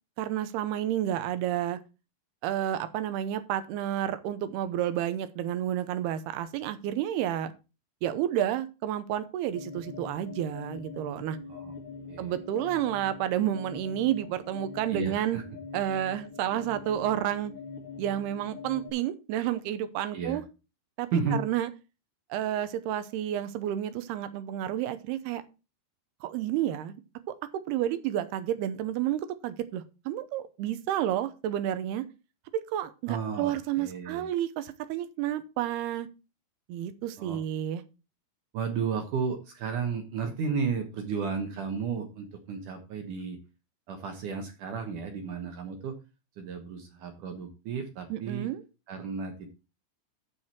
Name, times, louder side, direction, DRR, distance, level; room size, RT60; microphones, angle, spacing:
voice 1, 0.2-1.8 2.4-7.5 8.0-11.4 12.2-15.4 15.7-17.5 18.0-20.4 21.0-21.7 22.3-25.4 26.2-27.0 27.3-32.1 32.5-36.1 36.7-37.8 48.1-48.6, right 11 dB, 80° right, 12 dB, 2.7 m, -30 dB
sound 1, 9.5-18.9, left 4 dB, 65° left, 4.0 m, -43 dB
voice 2, 14.9-15.4 20.1-20.4 21.1-21.4 33.1-34.3 37.2-37.4 38.5-43.4 43.9-45.9 46.4-48.5 48.9-49.5, right 5 dB, 65° right, 4 dB, 2.2 m, -33 dB
14.5 x 5.0 x 4.3 m, 0.30 s
omnidirectional pair, 4.9 m